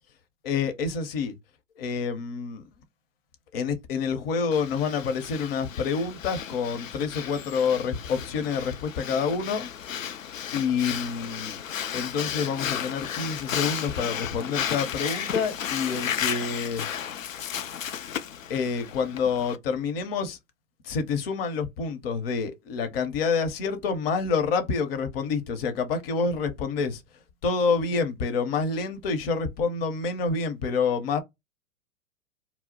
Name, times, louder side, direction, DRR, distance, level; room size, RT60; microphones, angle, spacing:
voice 1, 0.4-1.3 1.8-2.6 3.5-9.7 10.5-11.6 11.9-16.8 18.5-20.4 20.8-27.0 27.4-31.2, left 5 dB, 50° left, 0.8 m, -28 dB
Breathing, 4.5-19.6, left 9 dB, 80° left, 0.5 m, -34 dB
2.3 x 2.0 x 3.8 m
hypercardioid pair, 110°, 39 cm